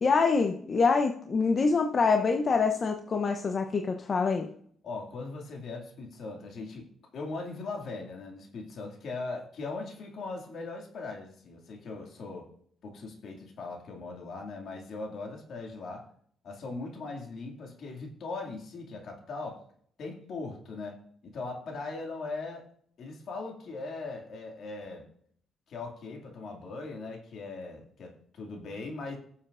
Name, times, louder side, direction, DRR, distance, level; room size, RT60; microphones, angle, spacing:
voice 1, 0.0-4.5, left 4 dB, 40° left, 4 dB, 0.7 m, -25 dB
voice 2, 4.8-12.5 12.8-16.1 16.4-19.6 20.0-21.0 21.2-22.6 23.0-25.1 25.7-29.2, left 3 dB, 65° left, 1 dB, 2.2 m, -39 dB
18.5 x 7.1 x 2.5 m, 0.63 s
cardioid pair, 90°, 0 cm